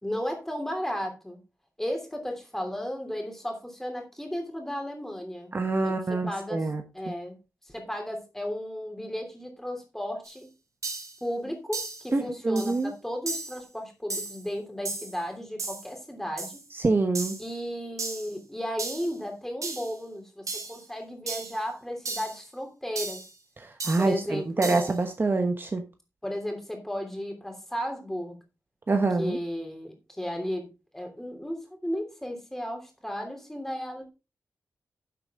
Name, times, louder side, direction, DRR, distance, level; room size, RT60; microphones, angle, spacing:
voice 1, 0.0-1.4 1.8-5.5 5.8-6.7 6.9-7.4 7.7-10.5 11.2-16.6 17.4-23.3 24.0-24.8 26.2-28.4 29.2-30.7 30.9-34.1, equal, 5° left, 3 dB, 3.0 m, -34 dB
voice 2, 5.5-6.8 12.1-12.9 16.7-17.4 23.6-25.8 28.9-29.4, right 3 dB, 35° right, 6 dB, 1.1 m, -26 dB
sound 1, 10.2-10.3 10.8-11.2 11.7-12.1 12.6-12.8 13.3-13.6 14.1-14.4 14.9-15.2 15.6-15.9 16.4-16.6 17.2-17.5 18.0-18.3 18.8-19.1 19.6-19.9 20.5-20.8 21.3-21.6 22.1-22.4 23.0-23.3 23.8-24.1 24.6-25.0, right 3 dB, 60° right, 3.6 m, -35 dB
11.0 x 7.4 x 3.7 m, 0.28 s
wide cardioid pair, 140°, 6 cm